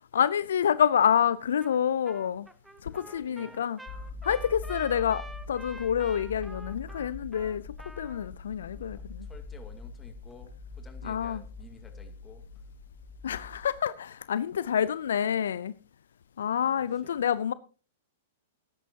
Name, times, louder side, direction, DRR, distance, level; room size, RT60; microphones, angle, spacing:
voice 1, 0.1-2.5 2.8-3.8 4.2-9.3 11.0-11.4 13.2-15.7 16.4-17.5, left 8 dB, 70° left, 0.5 m, -28 dB
Trumpet, 1.6-1.8 2.1-8.3, right 2 dB, 5° right, 1.1 m, -47 dB
voice 2, 2.9-3.6 8.9-12.4 16.7-17.1, left 4 dB, 15° left, 2.4 m, -53 dB
sound 1, 3.9-13.8, left 3 dB, 40° left, 3.0 m, -43 dB
19.0 x 10.5 x 2.9 m
hypercardioid pair, 105°, 0 cm